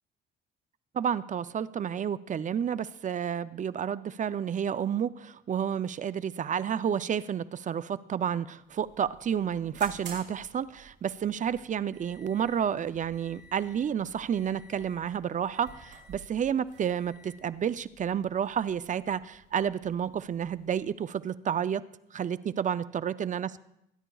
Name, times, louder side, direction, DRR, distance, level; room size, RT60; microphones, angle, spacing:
voice 1, 0.9-21.8 22.1-23.5, right 8 dB, 40° right, 16 dB, 0.4 m, -30 dB
sound 1, 8.6-21.0, right 4 dB, 65° right, 5.0 m, -53 dB
21.5 x 10.0 x 2.3 m, 0.80 s
cardioid pair, 90°, 20 cm